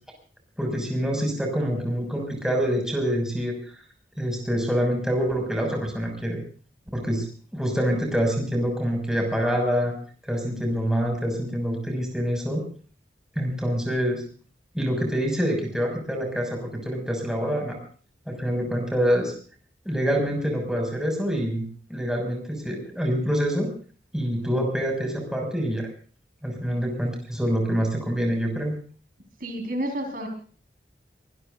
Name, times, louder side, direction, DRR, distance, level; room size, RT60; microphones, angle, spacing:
voice 1, 0.6-3.6 4.2-6.4 6.9-7.3 7.5-9.9 10.3-12.6 13.3-14.2 14.7-17.8 18.3-19.3 19.8-23.7 24.1-25.9 26.4-28.7, equal, 5° right, 2 dB, 6.2 m, -26 dB
voice 2, 29.4-30.3, right 1 dB, 50° right, 3 dB, 4.8 m, -30 dB
24.5 x 21.5 x 2.6 m, 0.42 s
head